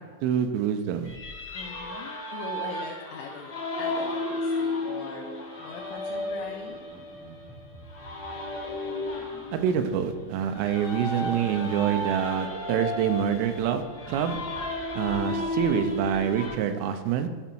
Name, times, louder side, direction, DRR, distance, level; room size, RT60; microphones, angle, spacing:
voice 1, 0.2-1.2 9.5-14.4 15.0-17.3, right 9 dB, 85° right, 7 dB, 3.3 m, -26 dB
sound 1, 1.0-16.5, left 2 dB, 50° left, 1.1 m, -34 dB
voice 2, 1.5-5.3 5.6-6.8, left 6 dB, 80° left, -1 dB, 2.9 m, -41 dB
12.5 x 5.1 x 4.5 m, 1.6 s
omnidirectional pair, 5.7 m